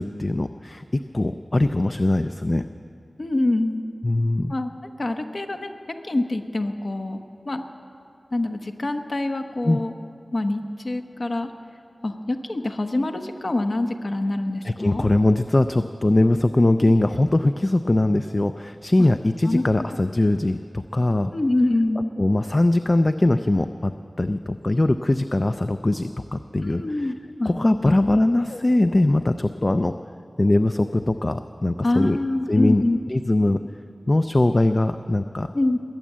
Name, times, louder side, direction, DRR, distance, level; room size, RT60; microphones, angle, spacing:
voice 1, 0.0-2.6 4.0-4.5 9.6-9.8 14.6-21.3 22.2-27.1 27.5-29.9 30.4-32.2 32.5-32.8 33.1-33.6 34.1-35.5, left 2 dB, 40° left, 9 dB, 0.4 m, -21 dB
voice 2, 3.2-3.8 4.5-4.7 5.0-5.7 6.0-7.6 8.3-9.9 10.3-11.5 12.0-15.1 16.8-16.9 19.0-19.1 19.4-19.6 21.3-22.0 26.6-27.5 27.8-27.9 28.5-28.6 31.8-33.0 35.5-35.8, left 2 dB, 60° left, 6 dB, 1.0 m, -25 dB
21.0 x 9.2 x 7.4 m, 2.6 s
wide cardioid pair, 60°, 0 cm